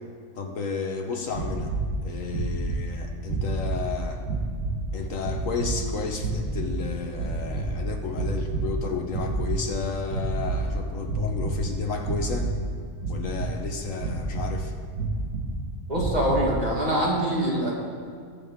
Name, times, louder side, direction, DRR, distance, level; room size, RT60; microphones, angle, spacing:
voice 1, 0.3-1.7 2.0-4.2 4.9-12.5 13.1-14.7, left 5 dB, 65° left, 3 dB, 1.3 m, -32 dB
sound 1, 1.3-1.9 2.3-2.9 3.2-3.9 4.2-4.8 5.2-5.7 6.2-6.8 7.1-7.8 8.1-8.8 9.1-9.7 10.1-10.7 11.0-11.6 12.0-12.6 13.0-13.6 14.0-14.5 14.9-15.5 15.9-16.5, right 3 dB, 90° right, 2.1 m, -29 dB
voice 2, 15.9-17.7, right 1 dB, 30° right, -4 dB, 2.1 m, -24 dB
20.0 x 6.8 x 3.6 m, 2.2 s
omnidirectional pair, 1.5 m